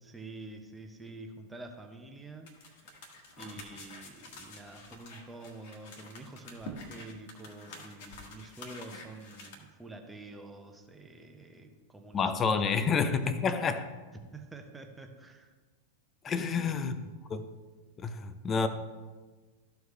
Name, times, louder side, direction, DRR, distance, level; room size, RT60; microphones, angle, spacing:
voice 1, 0.0-3.1 3.4-13.3 14.3-15.5 16.3-16.8, right 2 dB, 10° right, 1.0 m, -48 dB
sound 1, 2.5-9.5, left 2 dB, 50° left, 1.5 m, -48 dB
voice 2, 12.1-13.9 16.2-17.0 17.3-17.5 18.0-18.7, left 5 dB, 25° left, 0.6 m, -29 dB
14.0 x 4.7 x 3.3 m
figure-of-eight pair, 90°, 0 cm